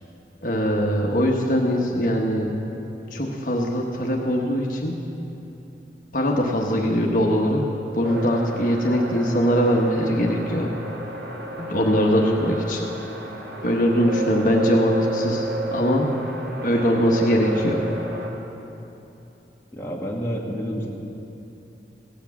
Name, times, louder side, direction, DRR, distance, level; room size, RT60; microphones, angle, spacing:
voice 1, 0.4-2.5 3.1-4.9 6.1-7.6 7.9-10.7 11.6-12.8 13.6-15.4 15.7-16.1 16.6-17.8, equal, 50° left, -1 dB, 1.1 m, -21 dB
sound 1, 8.0-18.3, right 1 dB, 75° right, 1.7 m, -32 dB
voice 2, 19.7-20.9, equal, 15° left, -3 dB, 1.5 m, -29 dB
17.0 x 8.6 x 7.0 m, 2.9 s
head